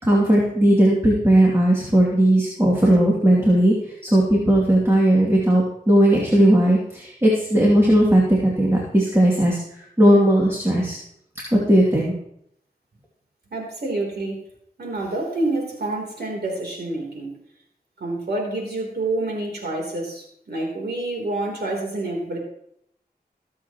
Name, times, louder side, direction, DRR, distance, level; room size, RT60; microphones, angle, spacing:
voice 1, 0.0-3.7 4.0-9.6 10.0-11.0 11.5-12.1, right 1 dB, 15° right, -4 dB, 2.7 m, -17 dB
voice 2, 13.5-14.4 14.8-17.3 18.0-22.4, right 2 dB, 90° right, -1 dB, 3.5 m, -28 dB
21.5 x 7.7 x 3.0 m, 0.74 s
wide cardioid pair, 60°, 16 cm